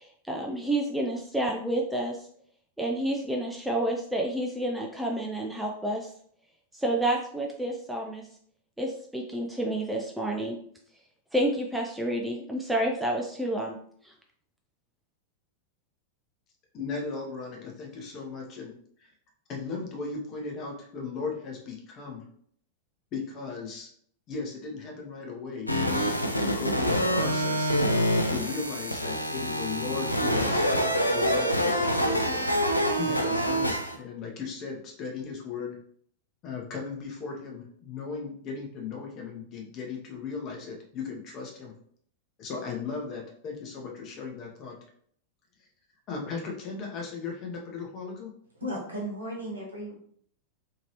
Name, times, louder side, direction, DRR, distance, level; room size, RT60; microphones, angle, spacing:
voice 1, 0.0-2.3 2.8-6.1 6.7-8.2 8.8-10.6 11.3-13.8 14.0-14.1, right 1 dB, 5° right, -1 dB, 0.4 m, -29 dB
voice 2, 16.7-18.7 19.0-19.1 19.5-22.2 23.1-23.9 24.3-27.7 28.3-30.6 31.1-32.4 33.0-35.8 36.4-41.7 42.4-44.8 46.1-48.3, left 5 dB, 35° left, 0 dB, 0.8 m, -37 dB
sound 1, 25.7-34.0, equal, 85° left, 0.3 m, -26 dB
voice 3, 48.6-50.0, equal, 75° right, -2 dB, 1.1 m, -35 dB
2.8 x 2.8 x 2.9 m, 0.62 s
figure-of-eight pair, 90°, 0 cm